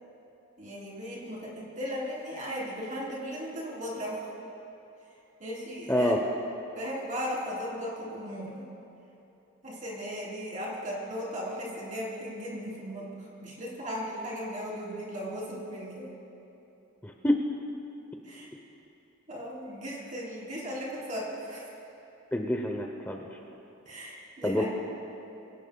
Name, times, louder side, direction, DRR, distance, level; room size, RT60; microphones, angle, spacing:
voice 1, 0.6-4.3 5.4-6.1 6.7-8.7 9.6-16.1 18.2-18.5 19.3-21.7 23.9-24.7, equal, 40° right, -5 dB, 3.8 m, -37 dB
voice 2, 5.9-6.2 17.0-17.3 22.3-23.2 24.4-24.6, left 1 dB, 10° left, 1 dB, 0.8 m, -27 dB
25.5 x 17.5 x 2.3 m, 3.0 s
head